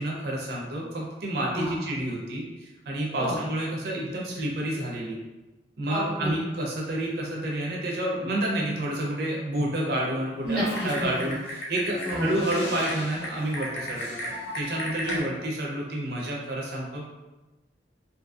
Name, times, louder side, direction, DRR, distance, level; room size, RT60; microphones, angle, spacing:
voice 1, 0.0-5.2 5.8-17.0, right 1 dB, 60° right, -3 dB, 0.6 m, -29 dB
voice 2, 5.9-6.3 10.4-10.9 12.1-12.3 15.1-15.2, equal, 5° right, -10 dB, 0.6 m, -29 dB
Typing, 10.4-15.2, left 1 dB, 80° left, 0.7 m, -35 dB
2.8 x 2.6 x 2.4 m, 1.1 s
head